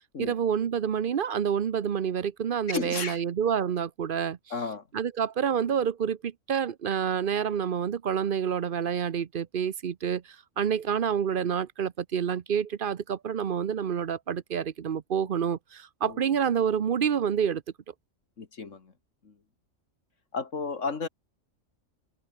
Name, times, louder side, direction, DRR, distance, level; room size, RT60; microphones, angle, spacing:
voice 1, 0.2-4.4 4.9-17.6, right 8 dB, 50° right, 0.8 m, -28 dB
voice 2, 2.7-3.2 4.5-4.8 16.0-16.4 18.4-18.9 19.2-19.3 20.3-21.1, left 4 dB, 70° left, 2.3 m, -33 dB
omnidirectional pair, 1.3 m